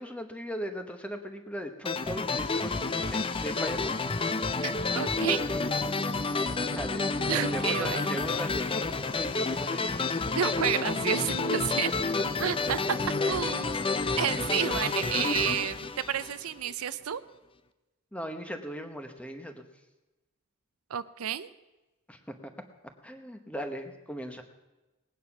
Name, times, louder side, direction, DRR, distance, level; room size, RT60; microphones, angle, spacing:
voice 1, 0.0-4.0 6.5-10.4 18.1-19.6 22.1-22.5 23.0-24.4, equal, 5° left, 6 dB, 1.1 m, -38 dB
sound 1, 1.9-16.7, left 3 dB, 25° left, 0.5 m, -29 dB
voice 2, 4.6-5.4 6.2-6.4 7.3-8.0 10.3-12.1 12.4-13.0 13.2-13.7 14.2-17.2 20.9-21.5, right 9 dB, 80° right, 14 dB, 0.5 m, -31 dB
19.5 x 9.4 x 5.9 m, 1.1 s
head